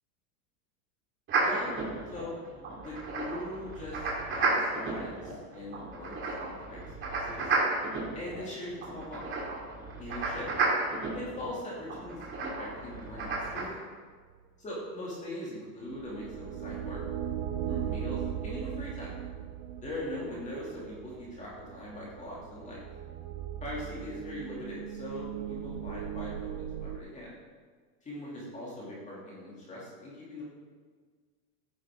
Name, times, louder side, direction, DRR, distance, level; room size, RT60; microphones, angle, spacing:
sound 1, 1.3-13.6, right 3 dB, 25° right, 2.7 m, -33 dB
voice 1, 1.4-1.8 2.1-2.3 2.8-6.8 7.1-7.5 8.1-9.2 10.0-10.5 11.1-13.8 14.6-17.0 17.6-19.1 19.8-22.8 23.6-27.3 28.0-30.4, left 1 dB, 15° left, -5 dB, 2.7 m, -41 dB
sound 2, 15.9-27.0, right 10 dB, 45° right, 0.8 m, -38 dB
14.0 x 10.5 x 3.8 m, 1.5 s
supercardioid pair, 165°, 47 cm